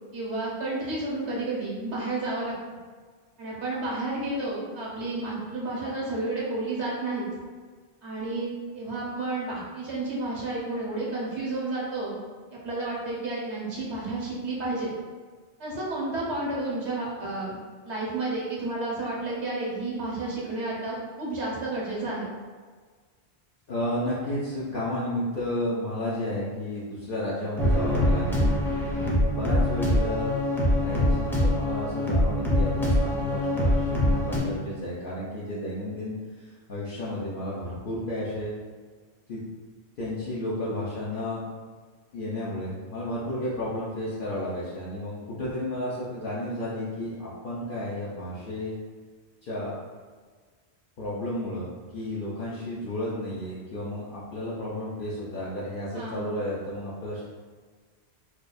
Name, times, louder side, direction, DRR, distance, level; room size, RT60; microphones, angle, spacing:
voice 1, 0.1-2.5 3.4-7.3 8.0-12.2 12.5-15.0 15.6-17.6 17.8-22.2 55.9-56.3, right 2 dB, 85° right, -6 dB, 1.3 m, -31 dB
voice 2, 23.7-28.6 29.3-30.3 30.7-38.5 39.3-39.4 40.0-41.4 42.1-48.7 49.4-49.8 51.0-57.2, left 1 dB, 55° left, -8 dB, 0.8 m, -32 dB
sound 1, 27.6-34.4, left 1 dB, 5° left, 0.5 m, -24 dB
4.6 x 2.3 x 2.5 m, 1.5 s
omnidirectional pair, 1.1 m